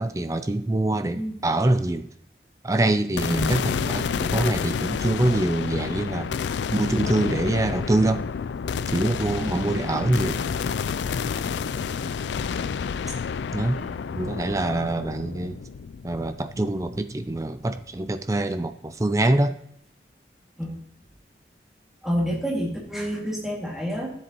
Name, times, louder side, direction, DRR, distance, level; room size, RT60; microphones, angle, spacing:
voice 1, 0.0-2.1 2.6-6.3 6.7-8.3 8.9-10.4 13.5-13.8 14.2-15.6 16.0-19.6, right 2 dB, 20° right, 10 dB, 0.4 m, -24 dB
sound 1, 3.2-17.5, left 6 dB, 85° left, 0.4 m, -29 dB
voice 2, 22.0-24.1, equal, ahead, -3 dB, 2.2 m, -28 dB
13.0 x 7.6 x 3.0 m, 0.72 s
head